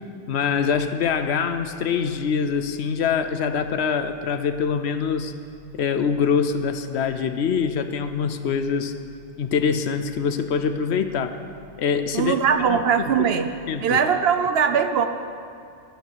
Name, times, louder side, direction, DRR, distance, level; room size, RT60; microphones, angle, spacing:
voice 1, 0.3-5.3 5.8-8.9 9.4-11.4 11.8-12.8 13.2-13.3 13.7-14.0, left 6 dB, 70° left, 10 dB, 0.9 m, -24 dB
sound 1, 5.4-13.9, left 1 dB, 5° left, 1.0 m, -53 dB
voice 2, 12.1-13.5 13.8-15.1, right 7 dB, 65° right, 8 dB, 0.8 m, -20 dB
10.5 x 9.1 x 6.8 m, 2.4 s
omnidirectional pair, 1.2 m